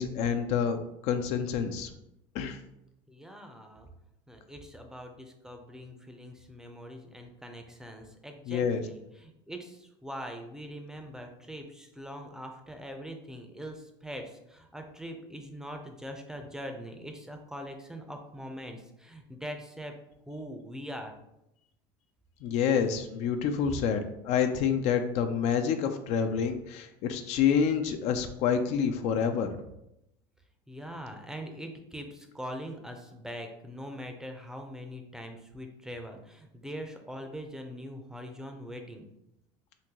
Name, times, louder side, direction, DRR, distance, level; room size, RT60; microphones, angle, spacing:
voice 1, 0.0-1.9 2.3-2.6 8.5-8.8 22.4-29.6, left 7 dB, 60° left, 7 dB, 0.4 m, -28 dB
voice 2, 3.1-3.9 4.3-19.9 20.3-21.1 30.7-39.1, equal, 5° right, 4 dB, 0.5 m, -42 dB
3.7 x 2.6 x 2.9 m, 0.84 s
supercardioid pair, 110°, 13 cm